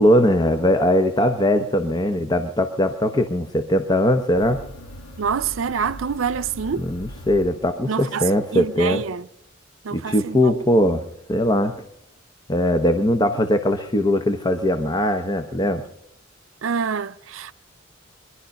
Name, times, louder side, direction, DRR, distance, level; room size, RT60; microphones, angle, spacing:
voice 1, 0.0-4.6 6.8-9.0 9.9-11.0 11.3-11.7 12.5-15.8, left 1 dB, 20° left, 0.7 m, -20 dB
sound 1, 4.4-8.1, equal, 70° left, 1.2 m, -40 dB
voice 2, 5.2-6.8 7.9-8.2 8.5-9.2 9.8-10.6 16.6-17.5, right 6 dB, 90° right, 0.5 m, -26 dB
23.0 x 11.5 x 5.2 m
head